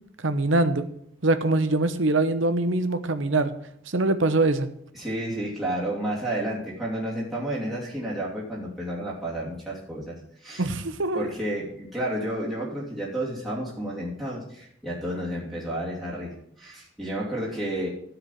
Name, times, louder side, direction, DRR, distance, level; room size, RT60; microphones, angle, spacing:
voice 1, 0.2-0.8 1.2-3.5 3.9-4.7 10.6-11.3, right 2 dB, 70° right, 10 dB, 0.9 m, -23 dB
voice 2, 4.9-10.7 11.1-17.9, right 1 dB, ahead, -5 dB, 2.9 m, -31 dB
12.5 x 5.0 x 7.4 m, 0.70 s
head